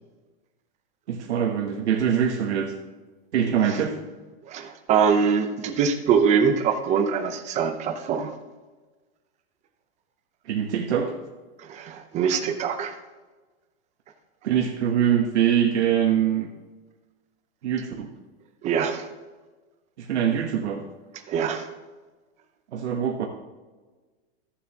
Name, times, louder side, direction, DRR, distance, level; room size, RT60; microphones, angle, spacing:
voice 1, 1.1-2.8 3.3-4.0 10.4-11.1 14.4-16.5 17.6-18.1 20.0-20.8 22.7-23.3, right 9 dB, 90° right, 2 dB, 1.2 m, -23 dB
voice 2, 4.5-8.4 11.6-13.0 18.6-19.1 21.3-21.7, right 6 dB, 20° right, 8 dB, 0.7 m, -23 dB
14.5 x 7.2 x 2.9 m, 1.3 s
supercardioid pair, 155°, 33 cm